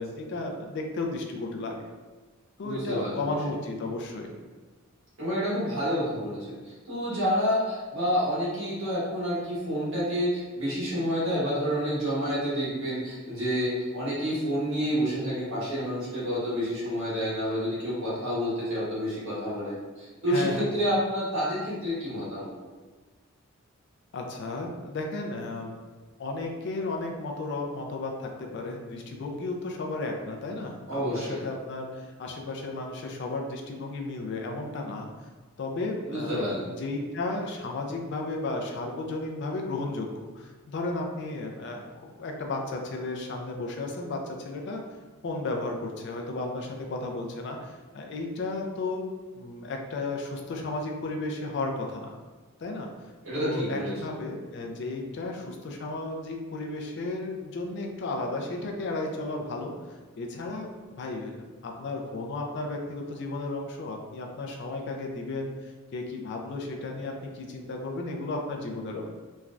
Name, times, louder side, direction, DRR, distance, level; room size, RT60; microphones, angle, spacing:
voice 1, 0.0-1.8 2.6-4.3 20.3-20.7 24.1-25.8 26.2-35.1 35.6-36.4 36.8-40.1 40.3-44.8 45.2-49.0 49.3-52.1 52.6-52.9 53.4-61.4 61.6-69.0, left 2 dB, 55° left, 2 dB, 0.4 m, -34 dB
voice 2, 2.6-3.3 5.2-22.5 30.9-31.4 36.0-36.7 53.2-53.9, equal, 70° right, -9 dB, 1.4 m, -29 dB
3.1 x 2.2 x 2.4 m, 1.4 s
head